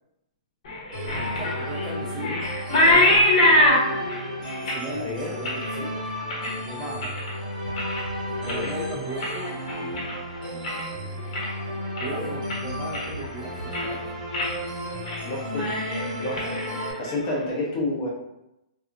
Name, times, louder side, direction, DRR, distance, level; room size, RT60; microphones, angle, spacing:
sound 1, 0.7-7.3 7.7-8.1 8.4-10.9 11.2-11.6 12.0-12.1 12.5-13.3 13.6-14.0 14.3-14.5 14.9-15.2 15.5-17.4, left 1 dB, 55° left, 0.9 m, -24 dB
sound 2, 0.9-16.9, equal, 70° right, 1.2 m, -33 dB
voice 1, 1.0-2.3 4.6-6.0 6.6-7.2 8.3-9.5 12.0-14.1, right 1 dB, 15° right, -5 dB, 0.4 m, -36 dB
voice 2, 5.0-5.3 8.4-8.7 12.0-12.3 15.2-15.7 16.1-16.6 17.0-18.1, left 2 dB, 30° left, -3 dB, 0.7 m, -30 dB
2.8 x 2.2 x 2.5 m, 0.89 s
hypercardioid pair, 160°, 4 cm